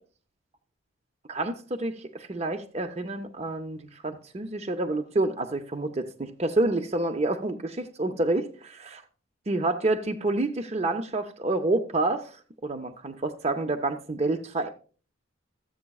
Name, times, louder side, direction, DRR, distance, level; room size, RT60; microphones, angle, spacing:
voice 1, 1.3-9.0 9.5-12.3 12.6-14.7, right 2 dB, 30° right, 0.5 m, -28 dB
14.0 x 7.7 x 2.3 m
head